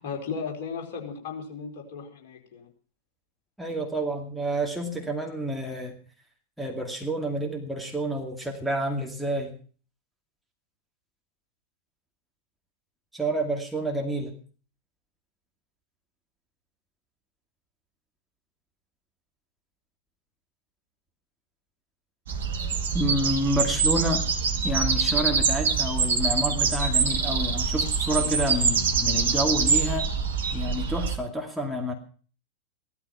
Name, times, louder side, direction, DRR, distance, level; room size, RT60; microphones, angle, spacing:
voice 1, 0.0-2.7, left 5 dB, 50° left, 2 dB, 4.5 m, -35 dB
voice 2, 3.6-5.9 6.6-9.5 13.1-14.3 22.9-24.2 24.6-30.1 30.5-31.9, right 1 dB, ahead, 1 dB, 2.4 m, -29 dB
sound 1, 22.3-31.2, right 5 dB, 60° right, 2.0 m, -25 dB
16.5 x 13.0 x 5.5 m, 0.41 s
figure-of-eight pair, 90°, 0 cm